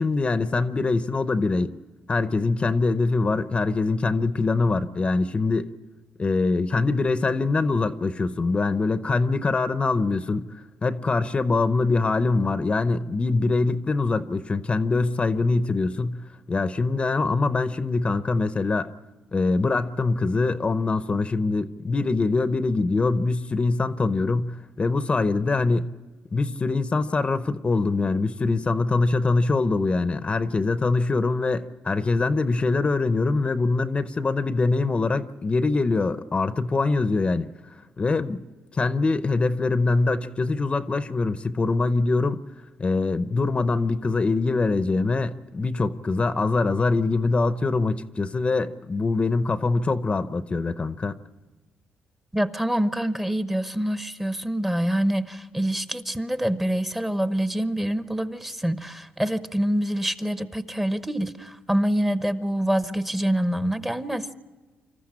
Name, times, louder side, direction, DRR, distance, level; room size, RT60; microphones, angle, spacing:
voice 1, 0.0-1.7 2.1-5.7 6.2-10.4 10.8-16.2 16.5-18.9 19.3-25.9 26.3-37.5 38.0-38.4 38.7-42.4 42.8-51.2, left 3 dB, 30° left, 0.7 m, -23 dB
voice 2, 52.3-64.3, right 1 dB, 10° right, 0.9 m, -26 dB
26.0 x 14.0 x 8.7 m
cardioid pair, 95°, 4 cm